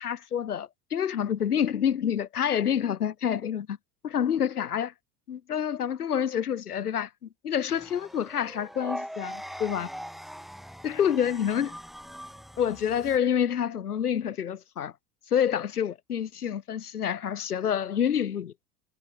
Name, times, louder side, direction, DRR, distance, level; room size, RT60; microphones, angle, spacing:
voice 1, 0.0-3.8 4.0-4.9 5.3-9.9 10.8-11.8 12.6-14.9 15.3-18.5, left 9 dB, 80° left, 1.2 m, -28 dB
sound 1, 7.7-13.2, equal, ahead, 1.4 m, -41 dB
figure-of-eight pair, 75°, 45 cm